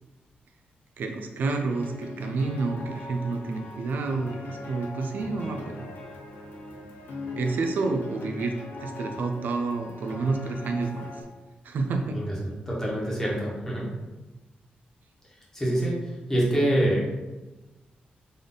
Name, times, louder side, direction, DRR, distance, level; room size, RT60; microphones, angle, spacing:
voice 1, 1.0-5.8 7.4-8.5 8.8-11.1 11.6-12.2, right 3 dB, 65° right, 4 dB, 0.5 m, -29 dB
sound 1, 1.7-11.2, left 2 dB, 85° left, 0.9 m, -40 dB
voice 2, 12.1-13.9 15.5-16.0 16.3-17.2, right 1 dB, 15° left, -5 dB, 1.3 m, -26 dB
3.9 x 3.4 x 3.8 m, 1.1 s
wide cardioid pair, 135°, 3 cm